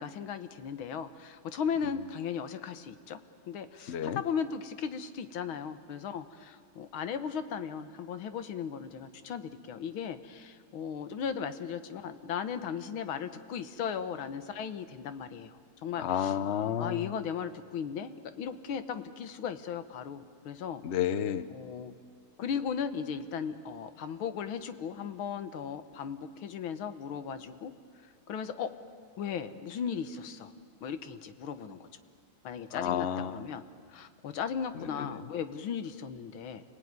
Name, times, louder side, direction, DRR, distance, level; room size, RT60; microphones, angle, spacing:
voice 1, 0.0-3.2 3.5-15.5 15.8-16.3 16.8-20.8 21.5-21.9 22.4-27.7 28.3-28.7 29.2-30.5 30.8-31.9 32.4-36.6, left 7 dB, 80° left, 11 dB, 1.9 m, -37 dB
voice 2, 3.9-4.2 16.0-17.1 20.8-21.5 32.7-33.4 34.7-35.3, left 9 dB, 60° left, 14 dB, 0.7 m, -31 dB
28.5 x 19.5 x 9.6 m, 2.2 s
omnidirectional pair, 2.2 m